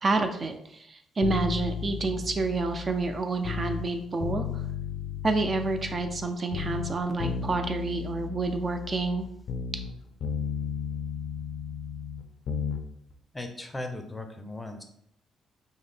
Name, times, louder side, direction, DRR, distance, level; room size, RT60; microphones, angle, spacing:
voice 1, 0.0-4.5 5.2-9.3, right 3 dB, 35° right, 6 dB, 0.3 m, -28 dB
sound 1, 1.2-3.9 4.2-6.3 6.5-9.9 10.2-12.8 13.1-13.2, left 6 dB, 70° left, 0.3 m, -34 dB
voice 2, 13.3-14.8, left 2 dB, 15° left, 6 dB, 0.5 m, -37 dB
3.7 x 2.0 x 3.3 m, 0.72 s
cardioid pair, 90°, 0 cm